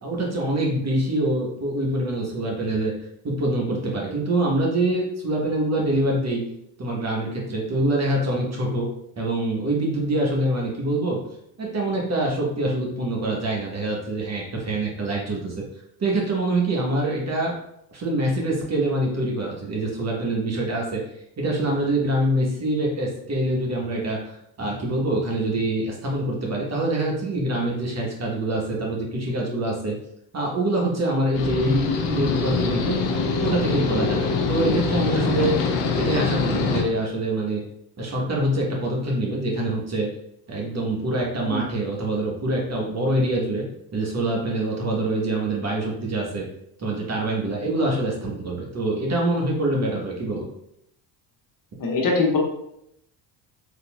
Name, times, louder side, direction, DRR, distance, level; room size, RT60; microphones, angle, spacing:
voice 1, 0.0-2.9 3.2-6.4 6.8-8.9 9.2-11.2 11.6-15.6 16.0-17.5 17.9-21.0 21.4-24.2 24.6-30.0 30.3-33.0 33.4-35.6 35.9-37.6 38.0-40.1 40.5-43.6 43.9-46.5 46.8-50.4, right 1 dB, 35° right, -2 dB, 1.2 m, -25 dB
sound 1, 31.3-36.8, left 5 dB, 75° left, 0.7 m, -24 dB
voice 2, 51.8-52.4, left 3 dB, 45° left, -1 dB, 1.2 m, -22 dB
3.5 x 2.8 x 2.2 m, 0.77 s
hypercardioid pair, 65°, 47 cm